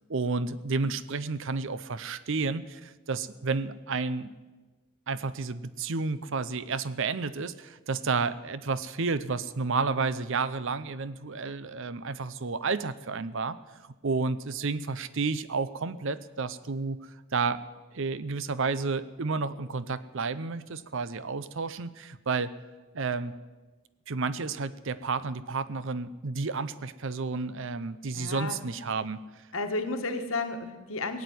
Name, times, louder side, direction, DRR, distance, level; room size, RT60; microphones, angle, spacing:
voice 1, 0.1-4.3 5.1-13.6 14.0-17.6 17.9-22.5 22.9-23.3 24.1-29.2, right 4 dB, 60° right, 15 dB, 0.7 m, -31 dB
voice 2, 28.1-28.6 29.5-31.2, left 3 dB, 65° left, 7 dB, 1.5 m, -32 dB
17.5 x 8.4 x 9.3 m, 1.2 s
head